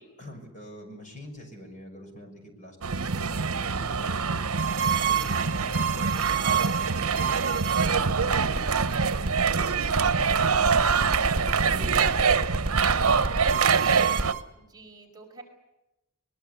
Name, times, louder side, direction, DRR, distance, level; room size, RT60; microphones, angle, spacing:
voice 1, 0.2-2.8 3.0-4.4 4.8-9.4 9.8-13.5 14.0-14.1, equal, 35° left, 5 dB, 6.1 m, -46 dB
sound 1, 2.8-14.3, right 5 dB, 80° right, 0.9 m, -25 dB
sound 2, 4.6-14.4, right 5 dB, 40° right, 2.5 m, -29 dB
voice 2, 10.2-10.7 14.6-15.4, right 3 dB, 20° right, 1 dB, 5.2 m, -49 dB
23.5 x 22.0 x 8.3 m, 0.92 s
head